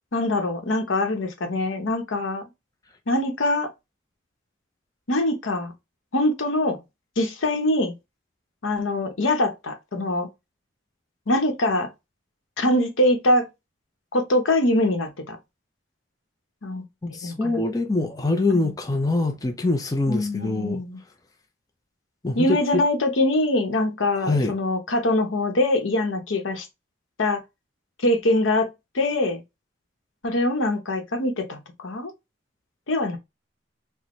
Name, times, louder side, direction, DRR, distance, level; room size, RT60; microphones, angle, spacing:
voice 1, 0.1-2.4 3.1-3.7 5.1-5.7 6.1-6.8 7.2-7.9 8.6-10.3 11.3-11.9 12.6-13.5 14.1-15.4 16.6-16.8 17.2-17.6 18.5-18.7 20.1-21.0 22.4-26.7 27.2-27.4 28.0-28.7 28.9-29.4 30.2-32.1 32.9-33.2, left 1 dB, 85° left, 0.9 m, -23 dB
voice 2, 17.0-20.8 22.2-22.8 24.2-24.5, left 2 dB, 20° left, 0.5 m, -24 dB
4.2 x 2.1 x 3.0 m
head